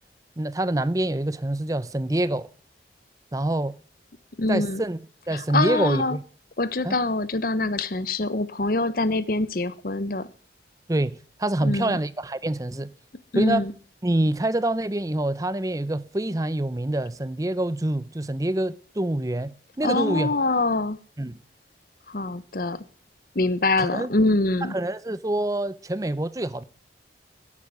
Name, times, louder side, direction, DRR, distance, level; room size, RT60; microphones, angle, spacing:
voice 1, 0.4-2.5 3.3-3.7 4.5-5.0 5.3-6.2 6.8-7.0 10.9-12.9 13.3-13.7 14.0-20.3 21.2-21.4 23.8-24.1 24.7-26.6, right 1 dB, 20° right, 0.6 m, -26 dB
voice 2, 4.4-4.8 5.3-6.2 6.6-10.3 11.6-12.0 13.3-13.7 19.8-21.0 22.1-22.8 23.3-24.7, left 2 dB, 55° left, 0.9 m, -24 dB
12.0 x 8.6 x 8.0 m
head